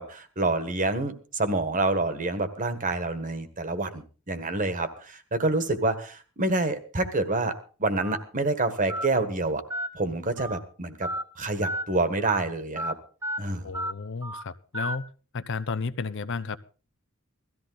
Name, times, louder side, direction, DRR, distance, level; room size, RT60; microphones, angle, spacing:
voice 1, 0.0-9.6 9.9-11.1 11.4-12.9 13.4-13.7, right 2 dB, 40° right, 11 dB, 1.5 m, -27 dB
Telephone, 8.0-8.2 8.9-9.1 9.7-9.9 10.4-10.6 11.0-11.2 11.6-11.8 12.2-12.4 12.8-12.9 13.2-13.4 13.7-13.9 14.2-14.4 14.7-15.0, equal, 15° right, 0.9 m, -32 dB
voice 2, 13.6-15.1 15.3-16.6, left 4 dB, 60° left, 14 dB, 0.7 m, -32 dB
17.0 x 14.0 x 4.0 m, 0.37 s
head